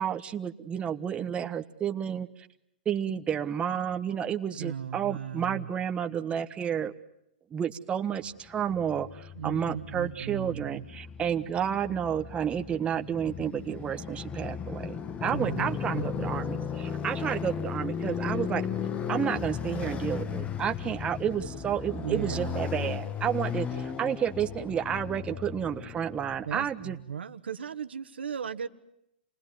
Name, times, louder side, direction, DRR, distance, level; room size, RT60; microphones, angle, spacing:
voice 1, 0.0-2.3 2.8-6.9 7.5-18.6 19.1-27.0, right 8 dB, 20° right, 6 dB, 1.3 m, -31 dB
voice 2, 4.4-5.7 9.3-10.9 15.3-16.4 18.3-18.4 22.0-22.7 26.4-28.7, right 8 dB, 85° right, 8 dB, 1.5 m, -37 dB
Motorcycle, 8.5-26.7, left 7 dB, 20° left, 1.4 m, -36 dB
28.0 x 20.0 x 9.5 m, 0.80 s
hypercardioid pair, 125°, 6 cm